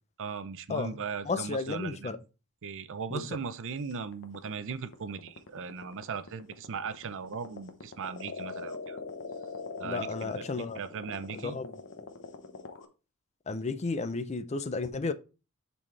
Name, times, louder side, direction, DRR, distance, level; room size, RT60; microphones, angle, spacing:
voice 1, 0.2-2.1 2.6-9.0 9.8-10.4 10.7-11.6, right 5 dB, 60° right, 0.6 m, -38 dB
voice 2, 0.7-2.2 3.1-3.4 9.8-10.8 11.3-11.8 13.5-15.1, left 3 dB, 30° left, 0.5 m, -33 dB
sound 1, 3.9-12.9, left 4 dB, 60° left, 1.0 m, -42 dB
10.5 x 4.2 x 3.3 m
head